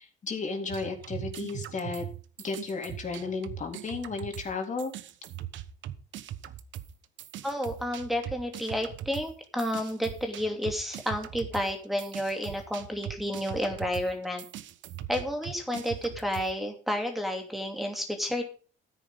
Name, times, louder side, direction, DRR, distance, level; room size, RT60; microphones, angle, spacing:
voice 1, 0.0-2.1 2.4-4.9, left 4 dB, 40° left, 3 dB, 3.8 m, -34 dB
sound 1, 0.7-4.5 4.8-16.5, right 11 dB, 70° right, 1.2 m, -41 dB
voice 2, 7.4-14.4 15.1-18.4, equal, ahead, 2 dB, 2.7 m, -31 dB
14.0 x 10.0 x 3.7 m, 0.38 s
cardioid pair, 110°, 20 cm